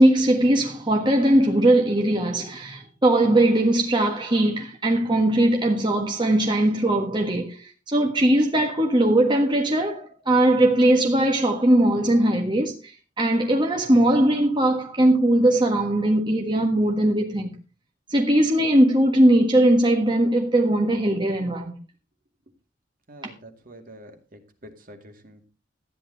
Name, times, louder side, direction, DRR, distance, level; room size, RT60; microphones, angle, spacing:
voice 1, 0.0-17.5 18.1-21.7 23.2-23.3, right 1 dB, 25° right, 1.4 m, -20 dB
voice 2, 23.1-25.5, equal, 50° right, 2.3 m, -46 dB
13.5 x 10.0 x 4.0 m
head